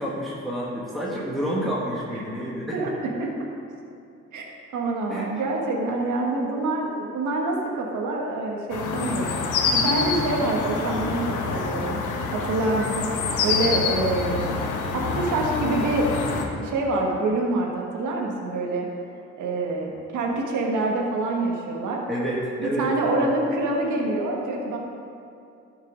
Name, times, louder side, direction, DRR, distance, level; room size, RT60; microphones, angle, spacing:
voice 1, 0.0-2.8 5.1-5.3 22.1-23.3, equal, ahead, -6 dB, 1.6 m, -29 dB
voice 2, 2.7-3.5 4.3-14.6 14.9-16.3 16.6-18.9 19.4-22.0 22.6-24.8, right 2 dB, 75° right, 0 dB, 1.5 m, -26 dB
sound 1, 8.7-16.4, left 4 dB, 85° left, 1.1 m, -26 dB
12.0 x 5.5 x 5.0 m, 2.5 s
cardioid pair, 90°, 30 cm